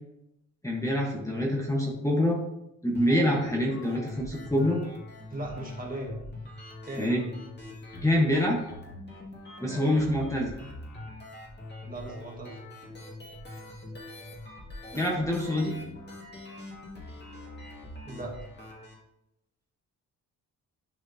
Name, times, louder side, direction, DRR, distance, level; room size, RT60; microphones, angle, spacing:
voice 1, 0.6-2.4 2.8-4.8 7.0-7.2 8.0-8.6 9.6-10.5 14.9-15.7, left 1 dB, 10° left, -2 dB, 1.2 m, -26 dB
sound 1, 2.9-18.9, left 2 dB, 30° left, 2.2 m, -43 dB
voice 2, 5.3-6.2 6.9-7.2 9.6-9.8 11.8-12.6 18.1-18.4, right 1 dB, 25° right, -1 dB, 1.7 m, -38 dB
11.0 x 4.9 x 2.8 m, 0.84 s
cardioid pair, 105°, 33 cm